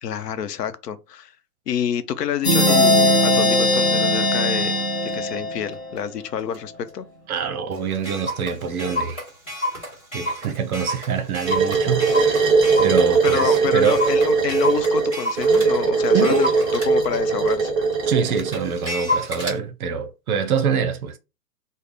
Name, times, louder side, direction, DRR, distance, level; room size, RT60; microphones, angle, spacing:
voice 1, 0.0-1.3 1.7-7.1 13.2-17.7, left 8 dB, 80° left, 0.7 m, -28 dB
sound 1, 2.4-6.0, left 1 dB, 30° left, 0.4 m, -19 dB
Clock, 5.1-5.2 5.7-6.0 6.5-6.6 6.9-7.0 7.3-7.4 7.7-15.7 16.1-19.6, equal, 10° left, 1.5 m, -30 dB
voice 2, 7.3-9.2 10.1-14.1 16.1-16.5 18.0-21.2, right 6 dB, 65° right, 0.7 m, -25 dB
sound 2, 11.4-18.6, right 4 dB, 10° right, 0.8 m, -20 dB
3.3 x 2.1 x 3.8 m
hypercardioid pair, 165°, 47 cm